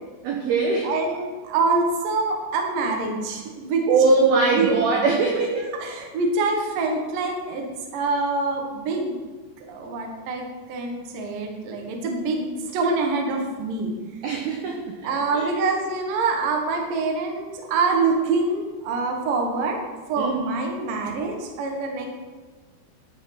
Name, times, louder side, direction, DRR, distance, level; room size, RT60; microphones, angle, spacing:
voice 1, 0.2-0.9 3.9-5.7 14.2-14.9 15.3-15.5 20.2-20.6, right 3 dB, 90° right, 0 dB, 2.1 m, -21 dB
voice 2, 0.8-3.9 4.5-4.7 5.6-7.7 7.9-9.2 9.7-13.9 15.0-19.8 20.1-22.1, right 3 dB, 65° right, 2 dB, 2.3 m, -25 dB
12.5 x 5.8 x 6.0 m, 1.4 s
omnidirectional pair, 5.8 m